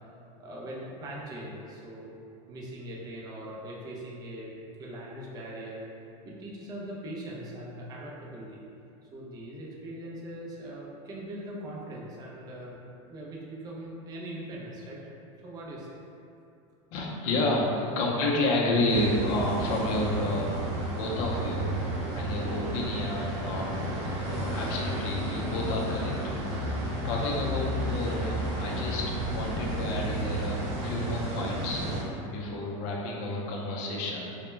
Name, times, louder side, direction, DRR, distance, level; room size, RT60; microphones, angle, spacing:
voice 1, 0.4-2.1 2.5-4.5 4.8-5.9 6.2-8.7 9.0-15.0 15.4-16.0, right 1 dB, 20° right, -4 dB, 0.4 m, -41 dB
voice 2, 16.9-21.7 22.1-23.7 24.2-34.3, left 1 dB, 60° left, -2 dB, 0.5 m, -30 dB
sound 1, 18.9-32.0, equal, 65° right, 0.6 m, -32 dB
2.1 x 2.0 x 3.1 m, 2.6 s
supercardioid pair, 140°, 17 cm